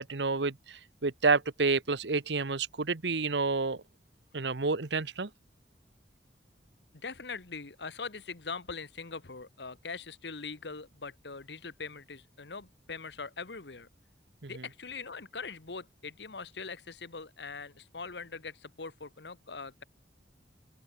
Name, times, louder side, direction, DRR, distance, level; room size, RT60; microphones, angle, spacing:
voice 1, 0.0-3.8 4.3-5.3 14.4-14.5, right 4 dB, 75° right, 1.1 m, -29 dB
voice 2, 7.0-13.9 14.5-19.8, left 4 dB, 75° left, 1.4 m, -42 dB
open air
head